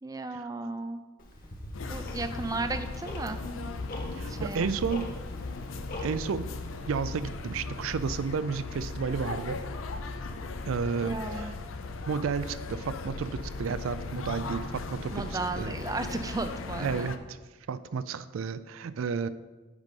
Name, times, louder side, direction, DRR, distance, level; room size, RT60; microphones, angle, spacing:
voice 1, 0.0-1.0 1.9-3.4 4.3-4.8 11.1-11.6 15.1-17.1, right 3 dB, 15° right, 9 dB, 0.4 m, -34 dB
Tick-tock, 1.2-6.8, left 1 dB, 40° left, 1.3 m, -44 dB
sound 1, 1.7-17.2, left 3 dB, 75° left, 0.6 m, -37 dB
voice 2, 4.2-5.0 6.0-6.5 6.9-9.6 10.6-11.6 12.1-15.7 16.8-17.4 17.7-19.3, right 5 dB, 80° right, 15 dB, 0.4 m, -32 dB
8.2 x 5.2 x 5.3 m, 1.2 s
head